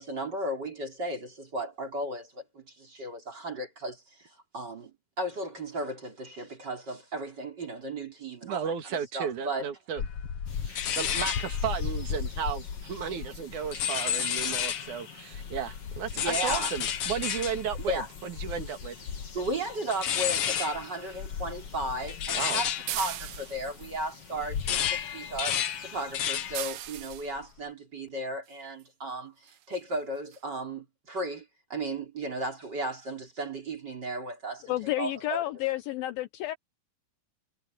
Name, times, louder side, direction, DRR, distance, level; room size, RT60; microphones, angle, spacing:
voice 1, 0.0-8.7 9.1-9.7 16.1-16.7 17.9-18.1 19.3-35.4, right 1 dB, 30° right, 3.9 m, -35 dB
voice 2, 8.5-10.0 10.6-19.0 22.3-22.6, right 7 dB, 60° right, 3.2 m, -34 dB
sound 1, 10.0-15.0 15.3-24.0 24.4-26.7 27.0-27.4, left 8 dB, 60° left, 1.6 m, -32 dB
sound 2, 10.5-26.7, left 5 dB, 40° left, 4.0 m, -49 dB
sound 3, 22.9-23.8 26.5-27.3 28.8-28.9 29.5-29.6 29.9-30.0 30.3-30.4, right 14 dB, 85° right, 2.9 m, -37 dB
voice 3, 34.7-36.6, left 15 dB, 80° left, 2.6 m, -30 dB
omnidirectional pair, 4.3 m